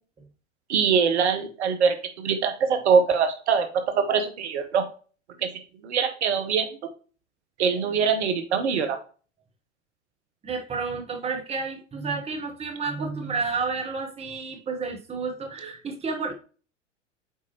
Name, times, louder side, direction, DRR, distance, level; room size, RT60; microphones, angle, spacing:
voice 1, 0.7-4.8 5.4-5.5 5.8-6.7 7.6-9.0, right 6 dB, 60° right, 7 dB, 1.1 m, -23 dB
voice 2, 10.4-16.3, right 4 dB, 15° right, 2 dB, 1.3 m, -31 dB
8.3 x 4.5 x 2.9 m, 0.37 s
figure-of-eight pair, 85°, 37 cm